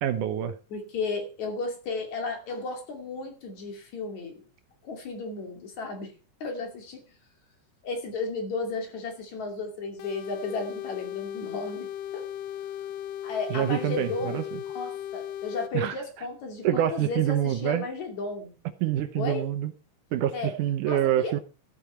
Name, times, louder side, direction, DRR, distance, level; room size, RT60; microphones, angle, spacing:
voice 1, 0.0-0.5 13.5-14.4 15.7-15.9 16.6-17.8 18.8-19.7 20.1-21.4, right 11 dB, 75° right, 10 dB, 2.3 m, -26 dB
voice 2, 0.7-4.4 4.8-6.1 6.4-7.1 7.8-11.9 12.1-12.3 13.2-18.5 19.2-19.5 20.3-20.6 20.8-21.4, left 3 dB, 60° left, 3 dB, 3.7 m, -34 dB
sound 1, 10.0-15.7, left 11 dB, 80° left, 1.4 m, -36 dB
14.0 x 9.0 x 4.5 m, 0.34 s
omnidirectional pair, 3.9 m